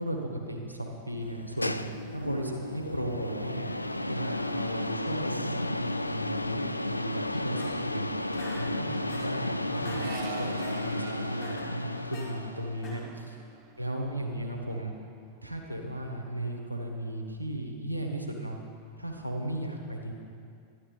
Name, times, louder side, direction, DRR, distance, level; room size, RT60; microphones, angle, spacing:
voice 1, 0.0-3.7 4.1-8.1 8.5-13.4 13.8-14.9 15.4-18.6 19.0-20.1, right 1 dB, 90° right, 2 dB, 1.4 m, -36 dB
sound 1, 1.2-12.8, left 1 dB, 85° left, 0.3 m, -33 dB
sound 2, 7.3-8.0 8.3-9.4 9.7-10.1 10.4-10.8 11.2-12.3 12.7-13.2, left 2 dB, 35° left, 2.8 m, -45 dB
Accelerating revving vroom, 8.6-15.0 15.3-16.0, right 5 dB, 35° right, 0.9 m, -47 dB
12.0 x 11.5 x 5.3 m, 2.3 s
figure-of-eight pair, 90°, 0 cm